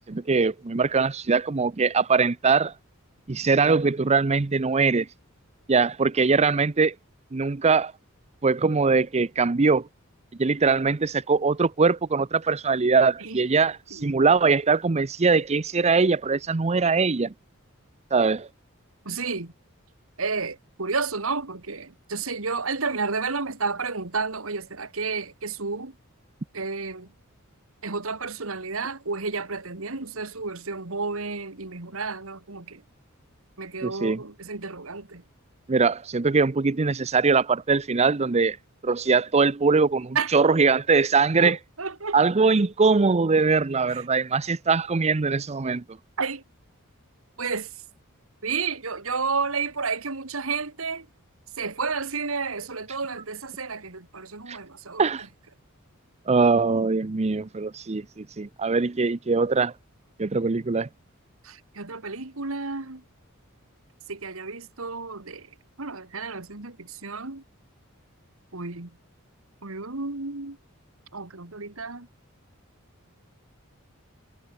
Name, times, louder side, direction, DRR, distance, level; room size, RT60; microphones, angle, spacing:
voice 1, 0.1-2.7 3.3-5.1 5.7-6.9 7.3-7.9 8.4-9.9 10.4-17.3 18.1-18.5 33.8-34.2 35.7-38.6 38.8-41.6 42.1-45.8 54.5-54.6 55.0-55.3 56.3-59.7 60.2-60.9, right 4 dB, 30° right, 0.6 m, -22 dB
voice 2, 19.0-19.5 20.2-26.0 26.5-27.1 27.8-32.8 33.6-35.2 40.1-40.4 41.4-42.2 43.9-44.0 46.2-46.4 47.4-47.8 48.4-51.1 51.6-55.0 61.4-63.0 64.1-65.5 65.8-67.4 68.5-69.0 69.6-70.6 71.1-72.1, right 4 dB, 70° right, 2.1 m, -31 dB
head